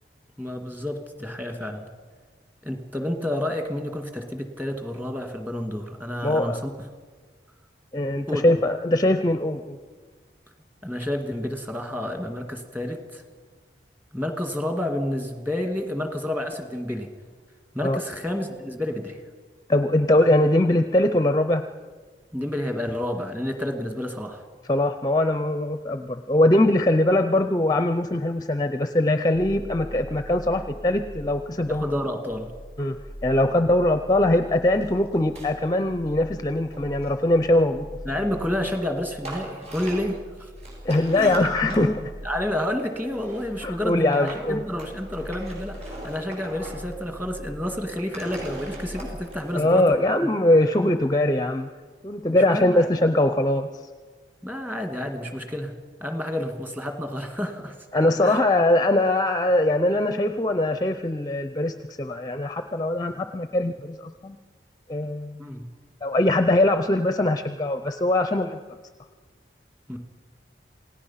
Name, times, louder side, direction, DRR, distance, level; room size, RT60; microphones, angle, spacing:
voice 1, 0.4-1.9 2.6-6.7 8.3-8.5 10.8-13.2 14.1-17.1 17.7-19.2 22.3-24.4 31.7-32.5 38.1-40.5 41.1-41.3 42.2-50.0 50.7-50.9 52.3-52.9 54.4-55.7 56.0-57.7 58.2-58.4 65.4-65.7 69.9-70.0, left 1 dB, 10° right, 5 dB, 2.0 m, -30 dB
voice 2, 6.2-6.6 7.9-9.8 17.8-18.0 19.7-21.7 24.7-31.9 32.8-33.0 33.2-37.8 40.8-42.1 43.6-44.6 49.5-51.7 52.0-53.7 57.9-64.4 64.9-65.5 66.0-68.6, left 1 dB, 20° left, 8 dB, 0.6 m, -22 dB
sound 1, 29.3-49.2, equal, 75° right, 5.7 m, -42 dB
sound 2, 34.8-34.9 35.1-35.5 36.6-37.8 38.7-38.8 39.2-40.2 40.6-41.9 42.8-43.5 44.1-44.5 44.8-46.9 47.2-47.3 47.8-49.6, right 1 dB, 35° right, 5.8 m, -40 dB
27.5 x 17.5 x 5.7 m, 1.5 s
head